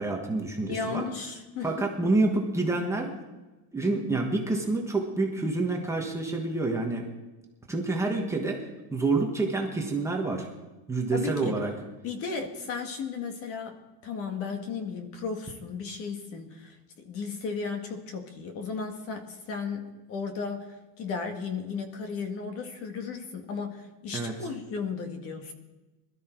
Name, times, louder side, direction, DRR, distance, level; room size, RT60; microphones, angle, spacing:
voice 1, 0.0-1.0 1.6-3.1 3.7-7.1 7.7-10.5 10.9-11.7 24.1-24.3, right 3 dB, 5° right, 0 dB, 1.4 m, -28 dB
voice 2, 0.7-1.9 11.1-11.6 12.0-25.5, left 5 dB, 35° left, 6 dB, 1.8 m, -35 dB
21.5 x 13.0 x 4.5 m, 1.1 s
cardioid pair, 170°, 38 cm